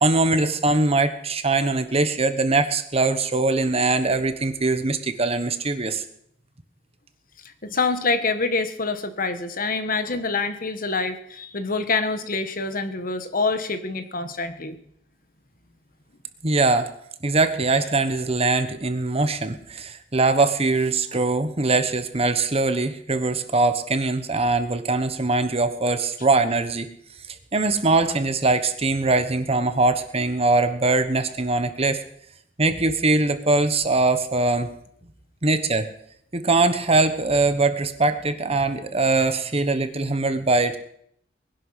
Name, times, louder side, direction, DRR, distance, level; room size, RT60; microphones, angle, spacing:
voice 1, 0.0-6.0 16.4-16.9 17.2-26.9 27.5-32.0 32.6-34.7 35.4-35.9 36.3-40.8, right 3 dB, 35° right, 10 dB, 1.2 m, -22 dB
voice 2, 7.6-14.8, left 3 dB, 50° left, 9 dB, 1.4 m, -26 dB
20.0 x 11.0 x 5.7 m, 0.69 s
head